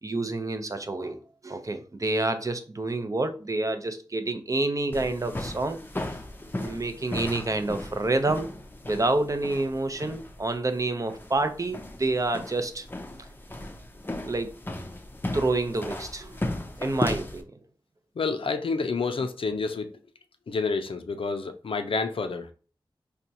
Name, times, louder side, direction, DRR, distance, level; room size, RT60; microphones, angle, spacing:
voice 1, 0.0-5.8 6.6-8.5 8.9-12.9 14.2-14.5 15.3-16.4 16.8-17.5, right 2 dB, 35° right, 0.5 m, -28 dB
sound 1, 4.9-17.4, left 1 dB, 25° left, 0.5 m, -36 dB
voice 2, 18.2-19.9 20.5-22.5, left 4 dB, 75° left, 0.4 m, -29 dB
4.2 x 2.2 x 2.7 m
wide cardioid pair, 65°, 9 cm